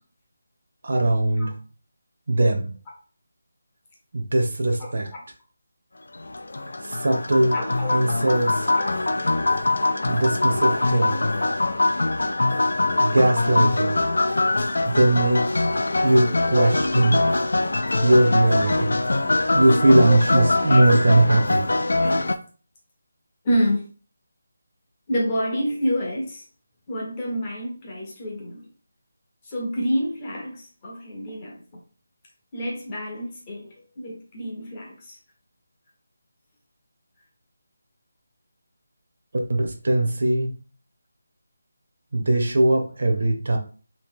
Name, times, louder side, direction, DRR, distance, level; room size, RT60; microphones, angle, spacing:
voice 1, 0.8-1.5 2.3-2.7 4.1-5.1 6.8-7.6 7.9-8.7 10.1-11.3 13.0-14.0 14.8-15.7 16.0-17.2 18.0-18.9 19.5-21.7 39.5-40.5 42.1-43.6, right 1 dB, 45° right, 4 dB, 0.6 m, -20 dB
voice 2, 4.8-5.2 7.5-8.0 8.7-9.1 10.7-10.8 15.7-15.8 16.5-16.7 18.6-19.2 20.1-20.2 20.7-20.9 21.4-21.5 22.0-22.3 23.4-23.8 25.1-26.4 26.9-28.7 29.4-31.6 32.5-35.2, equal, 15° left, -3 dB, 0.6 m, -29 dB
sound 1, 6.1-22.3, left 2 dB, 75° left, 0.4 m, -23 dB
2.8 x 2.7 x 3.5 m, 0.39 s
figure-of-eight pair, 180°, 0 cm